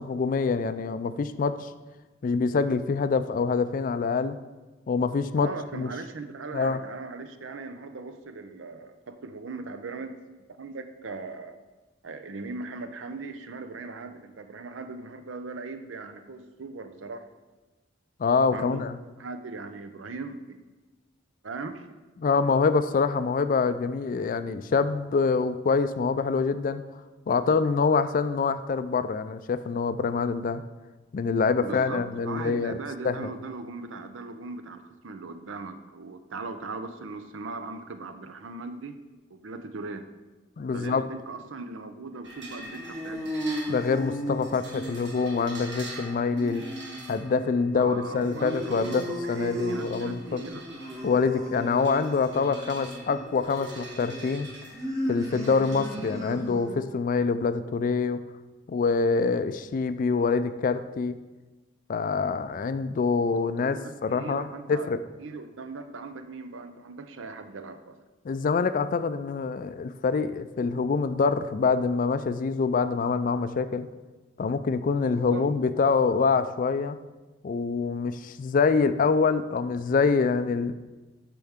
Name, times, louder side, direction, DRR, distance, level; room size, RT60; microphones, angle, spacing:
voice 1, 0.0-1.7 2.2-4.4 4.9-5.9 6.5-6.8 18.2-19.0 22.2-26.8 27.3-30.6 31.1-32.8 33.0-33.3 40.6-41.1 43.7-46.6 47.1-50.4 51.0-54.5 55.1-58.2 58.7-61.2 61.9-65.0 68.2-73.9 74.4-77.0 77.4-80.7, left 4 dB, 45° left, 12 dB, 0.3 m, -25 dB
voice 2, 5.4-10.2 10.6-11.6 12.0-17.3 18.5-18.9 19.2-20.6 21.4-21.9 31.6-39.0 39.3-40.1 40.7-43.3 47.7-50.6 63.6-64.9 65.2-68.0 75.1-75.5, right 3 dB, 85° right, 9 dB, 0.6 m, -39 dB
sound 1, 42.2-56.1, right 2 dB, 65° right, 1.7 m, -46 dB
sound 2, 42.4-56.9, equal, 15° right, 0.9 m, -36 dB
12.0 x 4.6 x 3.6 m, 1.2 s
head